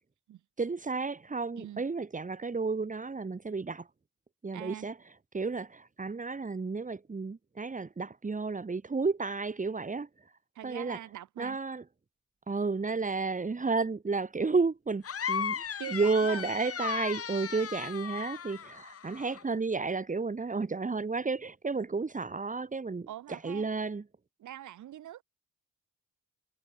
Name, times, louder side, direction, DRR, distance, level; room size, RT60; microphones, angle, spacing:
voice 1, 0.6-3.9 4.4-4.9 5.3-10.1 10.6-11.0 11.4-11.8 12.5-24.0, right 4 dB, 25° right, 3.3 m, -32 dB
voice 2, 4.5-4.9 10.5-11.6 15.8-16.5 23.1-23.7 24.4-25.2, right 12 dB, 75° right, 4.9 m, -43 dB
sound 1, 15.0-19.4, left 7 dB, 50° left, 4.6 m, -36 dB
cardioid pair, 90°, 30 cm